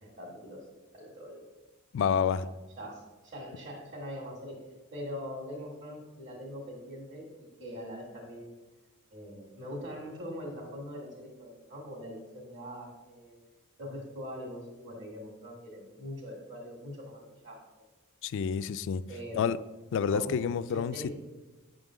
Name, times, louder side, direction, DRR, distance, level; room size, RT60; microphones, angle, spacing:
voice 1, 0.0-0.6 0.9-1.4 2.1-2.4 2.8-4.6 4.9-8.5 9.1-13.4 13.8-17.8 19.1-19.4 20.1-20.3 20.7-21.1, equal, 55° right, -5 dB, 1.7 m, -42 dB
voice 2, 1.9-2.4 18.2-19.0 19.4-19.6 19.9-20.9, left 7 dB, 60° left, 15 dB, 0.3 m, -28 dB
9.2 x 3.7 x 6.1 m, 1.2 s
head